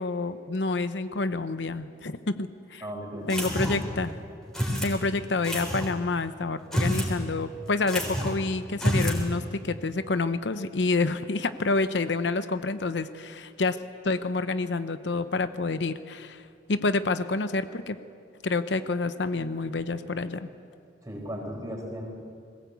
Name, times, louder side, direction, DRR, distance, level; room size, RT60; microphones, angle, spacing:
voice 1, 0.0-2.8 3.3-4.1 4.8-13.8 14.0-18.0 18.4-20.5, left 3 dB, 75° left, 11 dB, 0.8 m, -28 dB
voice 2, 2.8-3.5 21.0-22.1, equal, 20° right, 0 dB, 4.6 m, -36 dB
sound 1, 3.3-3.9 4.5-4.9 5.4-5.9 6.6-7.1 7.4-7.5 7.9-8.4 8.7-9.2, equal, 5° left, 3.8 m, -28 dB
21.0 x 17.5 x 8.3 m, 2.3 s
head